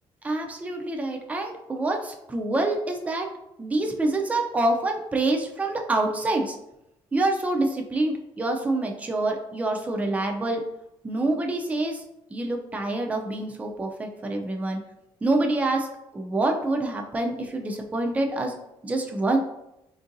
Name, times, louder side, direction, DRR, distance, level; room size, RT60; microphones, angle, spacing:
voice 1, 0.2-3.3 3.6-6.6 7.1-10.6 11.0-12.0 12.3-14.8 15.2-15.9 16.1-18.5 18.8-19.4, right 2 dB, 15° right, 2 dB, 0.4 m, -26 dB
3.6 x 2.5 x 2.6 m, 0.86 s
cardioid pair, 115°, 11 cm